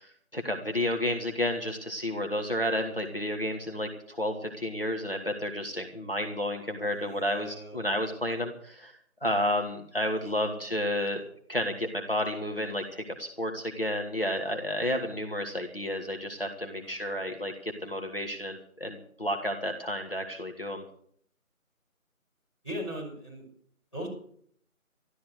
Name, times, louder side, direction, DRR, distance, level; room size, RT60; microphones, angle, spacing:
voice 1, 0.0-8.9 9.2-11.2 11.5-20.8, left 1 dB, 40° left, 3 dB, 1.6 m, -31 dB
voice 2, 6.9-7.8 10.4-10.6 16.8-17.2 22.6-23.5 23.9-24.1, equal, 20° left, -8 dB, 6.3 m, -40 dB
13.0 x 12.5 x 6.5 m, 0.62 s
figure-of-eight pair, 175°, 42 cm